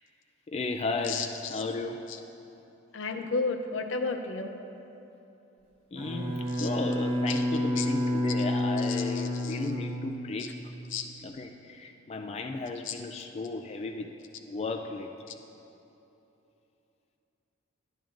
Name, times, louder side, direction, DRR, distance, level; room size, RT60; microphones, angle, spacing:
voice 1, 0.5-2.0 5.9-10.6 11.2-14.1 14.4-15.1, left 3 dB, 35° left, 4 dB, 0.3 m, -34 dB
voice 2, 1.0-1.6 2.1-2.2 2.9-4.5 6.5-6.7 7.3-7.4 7.8-7.9 8.8-9.6 10.4-10.5 10.9-11.0 12.8-12.9, left 4 dB, 85° left, 5 dB, 0.7 m, -33 dB
Bowed string instrument, 6.0-10.7, left 1 dB, 25° right, 1.2 m, -30 dB
12.0 x 10.0 x 2.5 m, 3.0 s
head